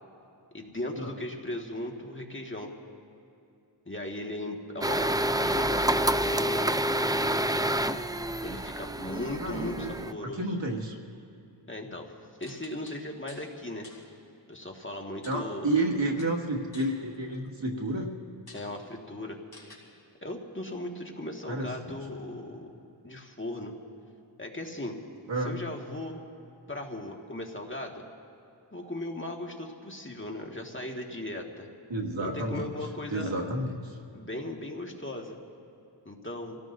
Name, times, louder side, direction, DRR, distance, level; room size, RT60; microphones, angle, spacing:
voice 1, 0.5-2.7 3.9-6.6 8.4-10.4 11.7-12.1 12.4-13.9 14.5-15.7 18.5-19.4 20.2-22.7 23.0-23.8 24.4-25.0 25.4-26.2 26.7-28.0 28.7-31.7 32.2-33.3 34.1-35.4 36.1-36.6, left 1 dB, 25° left, 1 dB, 1.8 m, -37 dB
sound 1, 4.8-10.1, right 1 dB, 10° right, 0.4 m, -28 dB
voice 2, 9.4-11.0 15.3-18.1 21.5-22.0 25.3-25.6 31.9-32.7 33.1-34.0, right 2 dB, 65° right, -1 dB, 2.2 m, -31 dB
sound 2, 12.4-13.5 13.8-14.1 15.2-15.9 16.2-17.5 18.0-18.1 18.5-18.7 19.5-19.8, left 2 dB, 55° left, 4.4 m, -51 dB
27.5 x 17.5 x 2.7 m, 2.7 s
wide cardioid pair, 50°, 47 cm